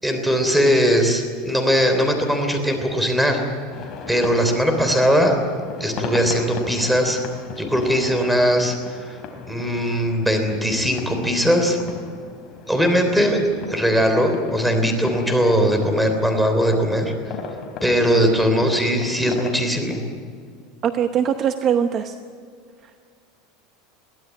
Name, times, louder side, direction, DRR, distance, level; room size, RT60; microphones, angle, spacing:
voice 1, 0.0-3.4 4.1-5.4 5.8-7.2 7.6-8.8 9.5-11.8 12.7-13.4 13.7-17.1 17.8-20.0, equal, ahead, 5 dB, 3.4 m, -20 dB
sound 1, 3.7-19.5, left 5 dB, 35° left, 3.4 m, -37 dB
voice 2, 20.8-22.1, right 8 dB, 35° right, 8 dB, 0.9 m, -21 dB
23.0 x 16.0 x 9.2 m, 2.1 s
supercardioid pair, 145°, 0 cm